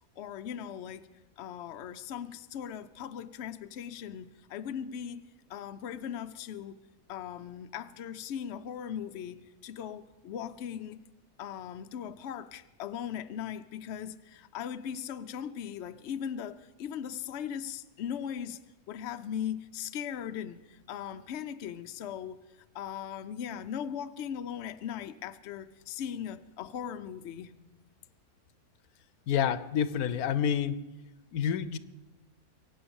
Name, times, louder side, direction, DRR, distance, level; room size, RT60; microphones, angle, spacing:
voice 1, 0.2-1.1 1.4-6.8 7.1-11.0 11.4-18.6 18.9-22.4 22.7-27.5, left 9 dB, 60° left, 0.8 m, -39 dB
voice 2, 29.3-30.8 31.3-31.8, left 8 dB, 80° left, 1.2 m, -28 dB
23.0 x 8.7 x 7.0 m
omnidirectional pair, 1.6 m